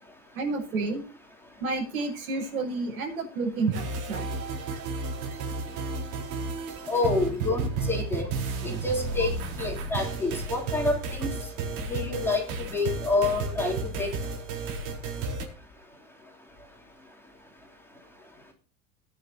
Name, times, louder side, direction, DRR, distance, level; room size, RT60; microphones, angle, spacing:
voice 1, 0.3-1.0 1.6-4.2, right 3 dB, 90° right, 0 dB, 6.3 m, -30 dB
sound 1, 3.7-15.4, right 4 dB, 60° right, 4.2 m, -33 dB
voice 2, 6.9-8.3 8.6-9.3 9.6-11.3 11.9-12.4 12.7-14.1, left 3 dB, 5° left, -1 dB, 2.9 m, -27 dB
19.5 x 10.0 x 2.8 m, 0.38 s
supercardioid pair, 130°, 41 cm